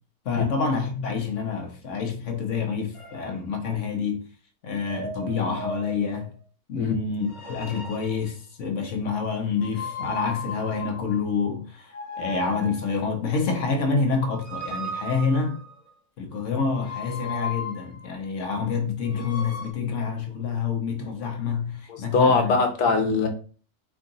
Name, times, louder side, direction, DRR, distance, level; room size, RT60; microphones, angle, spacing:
voice 1, 0.2-4.2 4.6-6.3 6.7-15.6 16.2-22.5 23.0-23.2, left 5 dB, 60° left, 1.1 m, -27 dB
sound 1, 2.9-3.3 4.7-6.2 7.2-8.4 9.6-11.3 11.9-13.1 14.3-15.9 16.7-18.1 19.1-19.7, left 2 dB, 30° left, 1.1 m, -36 dB
voice 2, 21.9-23.3, left 4 dB, 85° left, 1.4 m, -21 dB
4.7 x 2.4 x 3.9 m
omnidirectional pair, 1.6 m